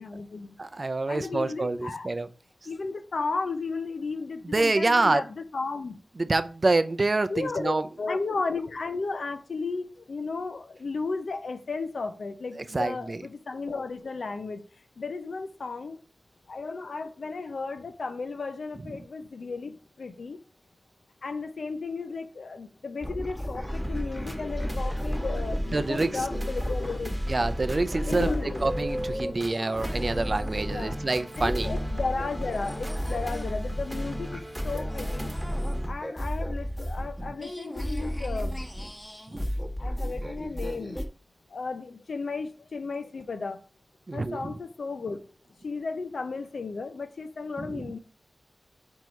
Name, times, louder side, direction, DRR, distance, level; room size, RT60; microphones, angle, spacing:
voice 1, 0.0-0.6 1.1-2.1 2.7-6.0 7.3-14.6 15.0-16.0 16.5-20.4 21.2-27.2 28.1-28.7 30.7-31.0 31.4-35.3 35.9-38.6 39.8-41.0 41.5-43.6 44.1-45.2 45.6-48.0, left 4 dB, 80° left, 0.7 m, -34 dB
voice 2, 0.6-2.3 4.5-5.2 6.3-7.8 12.7-13.2 25.7-26.2 27.3-28.3 28.6-31.7 35.7-35.8 39.3-39.5 44.1-44.5 47.6-47.9, right 2 dB, 45° right, 0.5 m, -26 dB
sound 1, 23.0-31.0 31.4-41.0, equal, 10° left, 1.2 m, -34 dB
sound 2, 23.7-35.9, equal, 10° right, 1.2 m, -35 dB
4.7 x 4.6 x 5.2 m
wide cardioid pair, 65°, 0 cm